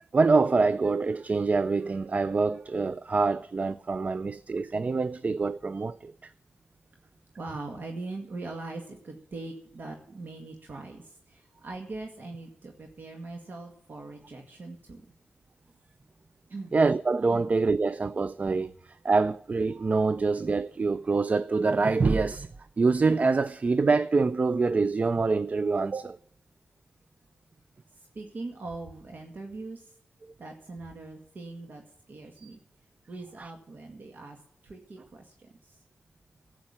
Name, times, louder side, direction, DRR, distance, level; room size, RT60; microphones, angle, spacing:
voice 1, 0.0-6.3 16.7-22.5 22.8-26.2 32.4-32.5 33.4-33.5, right 4 dB, 45° right, 0.4 m, -25 dB
voice 2, 7.4-15.1 16.5-16.7 17.3-17.5 27.9-30.0 30.4-32.6 33.1-35.8, right 3 dB, 65° right, 2.0 m, -41 dB
12.0 x 8.6 x 8.6 m
cardioid pair, 55°, 3 cm